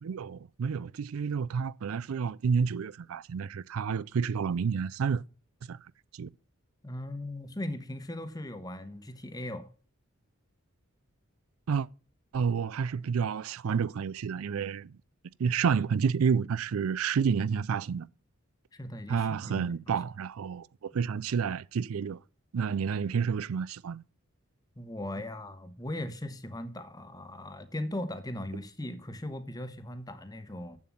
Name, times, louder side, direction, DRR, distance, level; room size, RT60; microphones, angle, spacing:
voice 1, 0.0-5.2 5.7-5.8 6.1-6.3 11.7-11.9 12.3-15.0 15.4-18.1 19.1-22.2 22.5-24.0, right 6 dB, 85° right, 0.4 m, -30 dB
voice 2, 6.8-9.7 18.7-19.7 24.8-30.8, left 1 dB, 20° left, 1.0 m, -38 dB
7.7 x 7.3 x 7.1 m
head